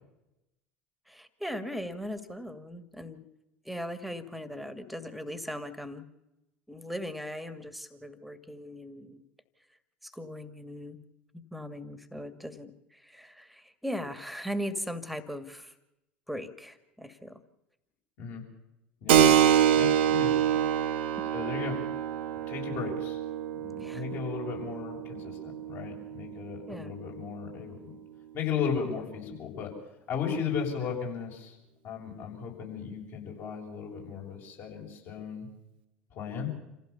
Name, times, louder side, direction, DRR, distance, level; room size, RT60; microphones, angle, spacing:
voice 1, 1.1-3.3 3.7-6.1 6.7-9.2 10.0-11.0 11.5-15.7 16.3-17.4 20.6-20.7 23.8-24.0 26.7-27.0 30.8-30.9, equal, ahead, 11 dB, 2.2 m, -39 dB
Keyboard (musical), 19.1-27.3, right 9 dB, 70° right, 1.7 m, -26 dB
voice 2, 19.7-20.3 21.3-21.8 22.5-23.2 23.6-27.9 28.3-29.7 30.1-31.5 31.8-35.5 36.1-36.5, left 7 dB, 50° left, 0 dB, 7.4 m, -35 dB
27.5 x 16.0 x 7.1 m, 0.92 s
figure-of-eight pair, 70°, 6 cm